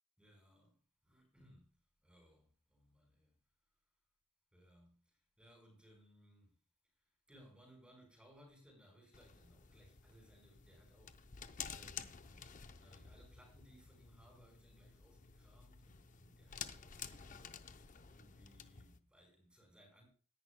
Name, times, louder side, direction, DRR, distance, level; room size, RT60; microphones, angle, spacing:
voice 1, 0.2-0.8 1.0-1.7 2.0-3.4 4.5-6.5 7.3-11.3 11.7-12.5 12.8-17.5 18.1-20.1, equal, 5° right, 4.6 m, -65 dB
sound 1, 9.1-19.0, left 7 dB, 40° left, 0.6 m, -52 dB
18.0 x 10.5 x 2.2 m
head